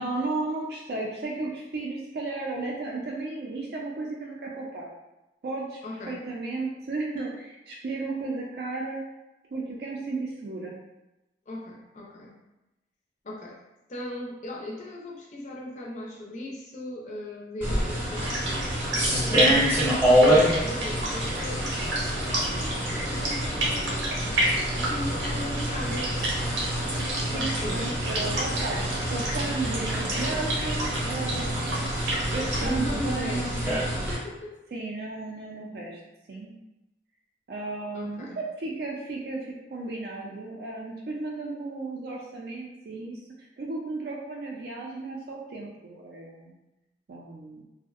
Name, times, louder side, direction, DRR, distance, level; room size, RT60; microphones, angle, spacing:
voice 1, 0.0-4.9 5.4-5.8 6.1-9.0 9.5-10.8 27.2-27.9 28.2-31.5 32.3-33.8 34.7-36.0 36.3-36.5 37.5-43.2 43.6-46.5 47.1-47.7, right 3 dB, 55° right, -2 dB, 0.4 m, -34 dB
voice 2, 5.8-6.2 11.5-12.4 13.2-13.6 13.9-18.5 19.1-24.3 24.8-26.3 27.3-28.0 32.6-34.6 37.9-38.4, left 1 dB, 40° left, -1 dB, 0.4 m, -38 dB
sound 1, 17.6-34.1, equal, 10° right, 0.7 m, -27 dB
sound 2, 18.1-32.7, right 1 dB, 85° right, 0.7 m, -31 dB
2.5 x 2.0 x 2.4 m, 0.94 s
head